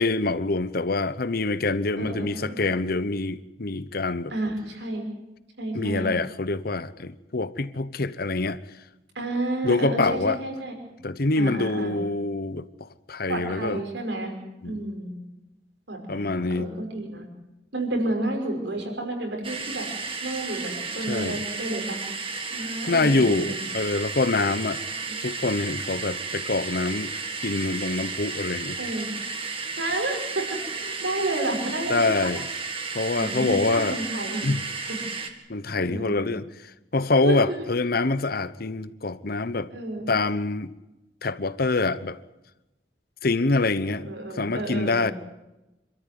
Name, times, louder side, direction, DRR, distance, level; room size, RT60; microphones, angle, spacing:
voice 1, 0.0-4.3 5.7-8.6 9.6-10.4 11.0-13.8 14.6-14.8 16.1-16.7 21.1-21.4 22.9-24.8 25.2-27.1 27.4-28.8 31.9-32.4 32.9-34.0 34.4-34.6 35.5-36.5 36.9-39.7 40.1-40.7 41.2-42.2 43.2-45.1, left 3 dB, 60° left, 1.0 m, -25 dB
voice 2, 2.0-2.8 4.3-5.0 5.6-6.1 9.1-10.7 11.4-12.0 13.3-14.3 14.6-15.1 15.9-16.3 16.5-17.2 17.7-19.9 20.2-22.0 22.5-23.6 25.1-25.2 28.8-29.1 29.8-32.3 33.1-34.4 34.9-35.4 35.8-36.3 37.2-37.6 39.7-40.2 43.8-45.1, right 2 dB, 80° right, 5.8 m, -31 dB
sound 1, 19.4-35.3, right 4 dB, 30° right, 2.0 m, -33 dB
27.0 x 13.5 x 9.5 m
head